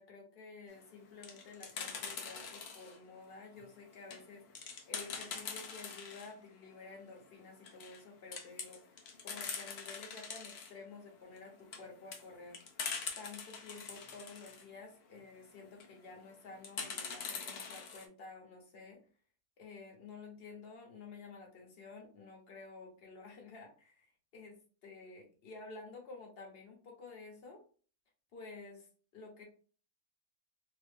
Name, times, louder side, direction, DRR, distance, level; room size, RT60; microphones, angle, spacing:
voice 1, 0.0-12.7 13.2-19.0 19.6-27.6 28.3-28.9 29.1-29.4, left 4 dB, 45° left, 1 dB, 1.0 m, -52 dB
sound 1, 0.9-3.0 3.5-6.3 6.7-6.8 7.0-7.1 7.5-8.0 8.3-10.7 11.4-14.6 15.6-15.9 16.6-18.0, left 5 dB, 60° left, 0.7 m, -43 dB
2.9 x 2.4 x 3.3 m, 0.40 s
omnidirectional pair, 1.6 m